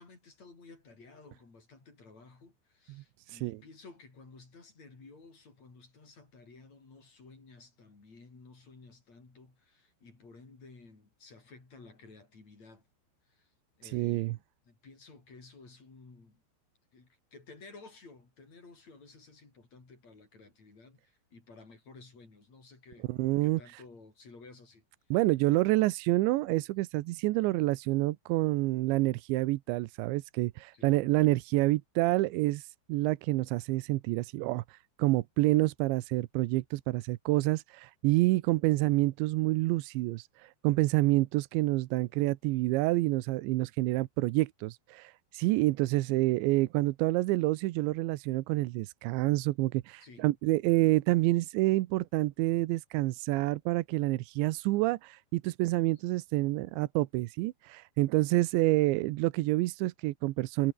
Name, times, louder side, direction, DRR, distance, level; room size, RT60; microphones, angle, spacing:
voice 1, 0.0-12.9 13.3-13.5 13.8-16.4 16.9-23.1 23.4-24.9 30.7-30.9 50.0-50.3, left 3 dB, 35° left, 7.1 m, -54 dB
voice 2, 2.9-3.6 13.8-14.4 23.1-23.6 25.1-60.7, right 19 dB, 85° right, 3.0 m, -28 dB
omnidirectional pair, 5.5 m